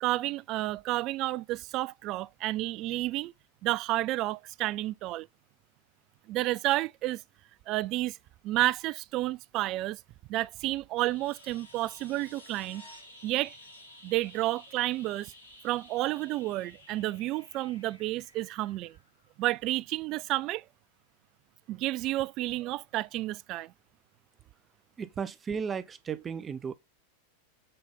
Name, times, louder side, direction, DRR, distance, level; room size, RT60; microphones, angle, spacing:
voice 1, 0.0-3.3 3.6-5.3 6.3-7.2 7.7-8.2 8.4-10.0 10.3-12.8 13.2-13.5 14.0-15.3 15.6-19.0 19.4-20.6 21.7-23.7, right 17 dB, 40° right, 0.3 m, -31 dB
sound 1, 11.0-19.6 22.0-22.1, left 1 dB, 75° left, 3.9 m, -53 dB
voice 2, 25.0-26.7, right 6 dB, 20° right, 0.7 m, -35 dB
7.7 x 4.0 x 3.6 m
figure-of-eight pair, 90°, 0 cm